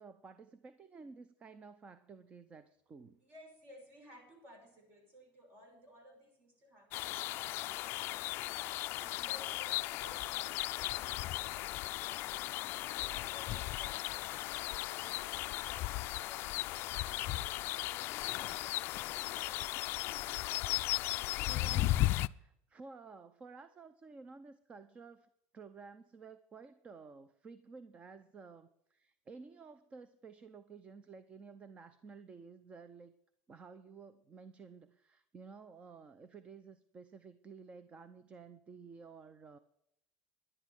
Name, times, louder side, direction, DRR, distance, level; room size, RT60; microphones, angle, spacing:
voice 1, 0.0-3.2 8.6-8.9 16.3-16.4 21.4-25.3 25.5-33.1 33.5-39.6, right 4 dB, 25° right, 13 dB, 0.7 m, -53 dB
voice 2, 3.2-19.7, equal, 45° right, 3 dB, 5.6 m, -59 dB
sound 1, 6.9-22.3, left 17 dB, 50° left, 0.4 m, -36 dB
11.0 x 10.5 x 6.2 m, 0.78 s
cardioid pair, 140°, 5 cm